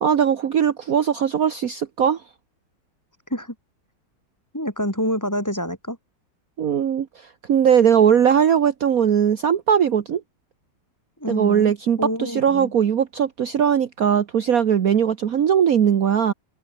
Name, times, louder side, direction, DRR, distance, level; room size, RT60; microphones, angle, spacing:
voice 1, 0.0-2.2 6.6-7.1 7.5-10.2 11.3-16.3, right 8 dB, 55° right, 1.5 m, -19 dB
voice 2, 4.5-6.0 11.2-12.7, equal, 10° left, 4.9 m, -27 dB
omnidirectional pair, 1.9 m